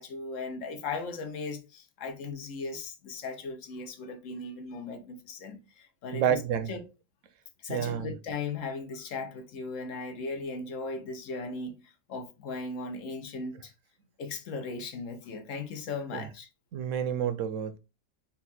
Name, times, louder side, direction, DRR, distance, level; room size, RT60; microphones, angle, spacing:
voice 1, 0.0-6.4 6.7-6.8 7.6-13.7 14.2-16.5, left 3 dB, 85° left, 1.2 m, -37 dB
voice 2, 6.1-6.7 7.7-8.1 16.1-16.3 16.7-17.8, right 9 dB, 90° right, 1.0 m, -29 dB
4.1 x 2.3 x 4.1 m
omnidirectional pair, 1.3 m